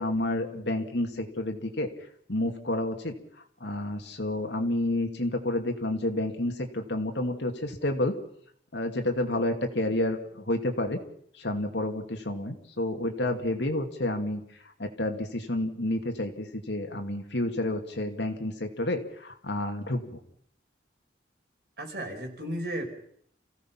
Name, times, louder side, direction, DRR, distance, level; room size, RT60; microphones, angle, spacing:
voice 1, 0.0-1.9 2.3-3.1 3.6-8.1 8.7-10.2 10.5-11.0 11.4-14.4 14.8-20.0, left 1 dB, 75° left, 5 dB, 2.5 m, -29 dB
voice 2, 21.8-22.9, right 1 dB, 60° right, 1 dB, 5.1 m, -34 dB
28.5 x 16.5 x 5.8 m, 0.65 s
head